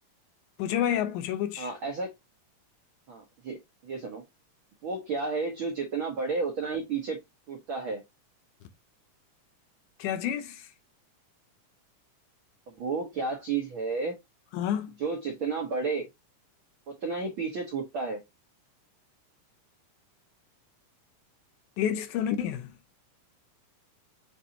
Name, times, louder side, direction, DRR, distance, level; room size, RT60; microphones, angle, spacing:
voice 1, 0.6-1.7 10.0-10.7 14.5-15.0 21.8-22.7, left 10 dB, 80° left, 2.1 m, -29 dB
voice 2, 1.6-2.1 3.1-3.6 3.8-4.2 4.8-7.2 7.5-8.0 12.7-14.2 15.0-16.0 16.9-18.2, right 4 dB, 75° right, 1.2 m, -32 dB
6.7 x 2.7 x 2.7 m
omnidirectional pair, 3.6 m